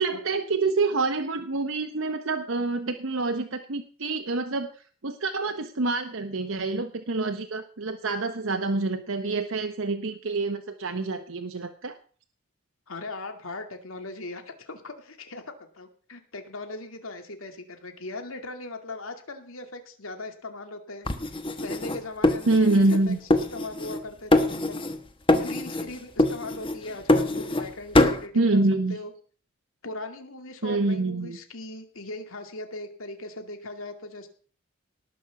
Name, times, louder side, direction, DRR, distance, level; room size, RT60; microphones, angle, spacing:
voice 1, 0.0-12.0 22.5-23.2 28.3-29.0 30.6-31.4, right 3 dB, 65° right, 6 dB, 1.0 m, -26 dB
voice 2, 12.9-21.1 21.6-24.8 25.3-28.6 28.9-29.1 29.8-34.3, left 2 dB, 75° left, 6 dB, 2.3 m, -39 dB
sound 1, 21.1-23.0 23.3-24.0 24.3-25.0 25.3-25.9 26.2-27.7 27.9-28.2, left 1 dB, 25° left, 1.3 m, -23 dB
18.5 x 6.3 x 7.1 m, 0.43 s
head